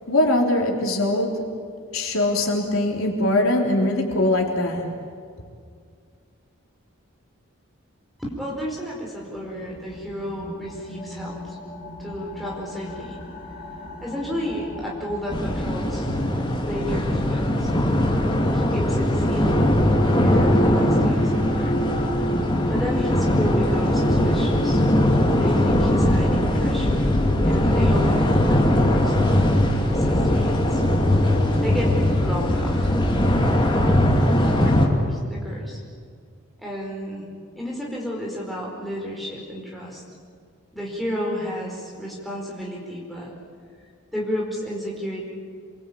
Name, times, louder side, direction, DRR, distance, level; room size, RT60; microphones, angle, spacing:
voice 1, 0.1-1.4 1.9-4.9, left 1 dB, 75° left, 0 dB, 3.8 m, -22 dB
voice 2, 8.2-11.6 12.0-13.2 14.0-16.1 16.6-17.7 18.5-19.8 20.2-21.7 22.7-24.8 25.4-27.1 27.4-30.8 31.6-31.9 32.2-32.9 33.7-34.1 34.6-35.8 36.6-37.3 37.5-40.0 40.7-43.3 44.1-45.3, equal, ahead, -4 dB, 4.9 m, -32 dB
sound 1, 9.0-24.8, equal, 40° left, 2.7 m, -34 dB
sound 2, 15.3-34.9, left 1 dB, 20° left, 2.5 m, -20 dB
28.0 x 22.5 x 8.7 m, 2.2 s
head